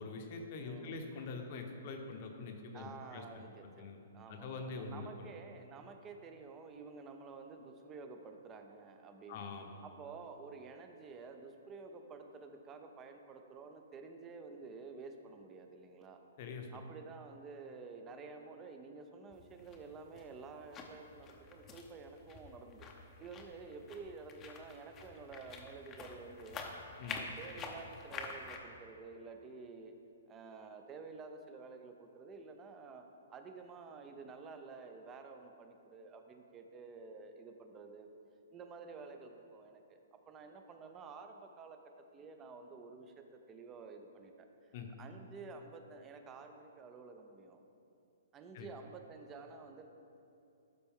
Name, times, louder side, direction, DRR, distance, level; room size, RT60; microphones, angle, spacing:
voice 1, 0.0-3.4 3.8-4.0 4.3-5.3 9.3-9.8 16.4-16.7 27.0-27.2 44.7-44.9 48.5-48.7, left 4 dB, 50° left, 4 dB, 0.9 m, -44 dB
voice 2, 0.6-1.3 2.7-3.9 4.1-9.5 9.8-16.2 16.7-22.9 23.2-26.6 27.1-29.9 30.3-33.0 33.3-38.1 38.5-40.0 40.3-41.8 42.1-44.5 45.0-47.6 48.3-49.9, right 4 dB, 20° right, 6 dB, 0.6 m, -51 dB
sound 1, 19.3-28.6, left 4 dB, 25° left, 0.7 m, -48 dB
12.0 x 4.3 x 3.6 m, 2.7 s
hypercardioid pair, 140°, 0 cm